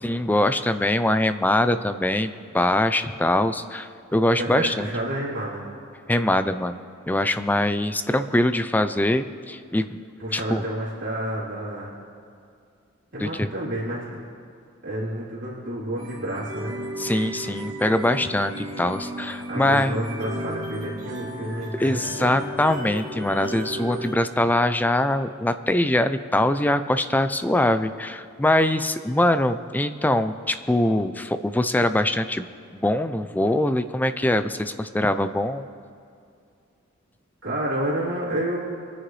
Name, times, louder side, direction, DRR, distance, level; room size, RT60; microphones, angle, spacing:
voice 1, 0.0-4.9 6.1-10.0 10.3-10.6 13.2-13.5 17.0-20.0 21.8-32.5 32.7-35.6, left 1 dB, 10° left, 11 dB, 0.4 m, -23 dB
voice 2, 4.4-5.7 10.2-12.0 13.1-14.2 14.8-16.8 19.5-22.6 37.4-38.6, right 1 dB, 60° right, -8 dB, 3.4 m, -30 dB
sound 1, 16.0-24.1, right 1 dB, 80° right, 2.4 m, -35 dB
25.0 x 9.8 x 3.2 m, 2.4 s
head